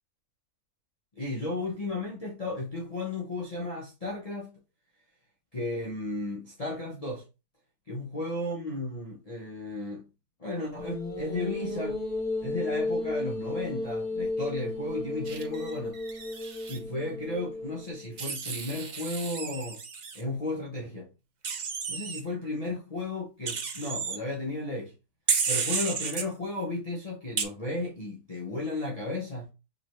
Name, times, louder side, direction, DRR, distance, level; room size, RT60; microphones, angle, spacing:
voice 1, 1.1-4.5 5.5-7.2 7.9-10.0 10.4-12.0 12.4-16.0 16.7-19.8 20.1-21.1 21.9-24.9 25.5-29.5, left 2 dB, 30° left, 0.8 m, -34 dB
sound 1, 10.8-18.2, left 2 dB, 70° left, 1.8 m, -33 dB
Wild animals, 15.2-16.8 18.2-20.2 21.4-22.2 23.5-24.2 25.3-26.2 27.4-27.5, right 5 dB, 80° right, 0.4 m, -32 dB
5.2 x 3.3 x 3.1 m
omnidirectional pair, 1.7 m